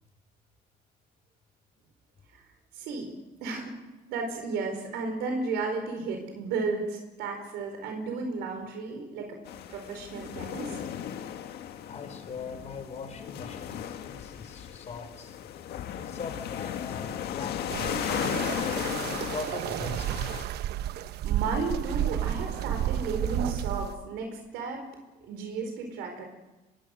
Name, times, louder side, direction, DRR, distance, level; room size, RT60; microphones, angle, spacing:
voice 1, 2.7-3.1 3.4-3.7 4.1-9.4 9.7-10.8 21.2-24.9 25.2-26.3, right 4 dB, 90° right, 4 dB, 4.8 m, -33 dB
sound 1, 9.5-20.4, left 10 dB, 70° left, 1.9 m, -36 dB
voice 2, 11.9-20.4, left 5 dB, 40° left, 6 dB, 4.9 m, -41 dB
sound 2, 17.7-23.9, right 12 dB, 75° right, 1.0 m, -31 dB
26.0 x 22.0 x 6.7 m, 1.1 s
cardioid pair, 110°, 17 cm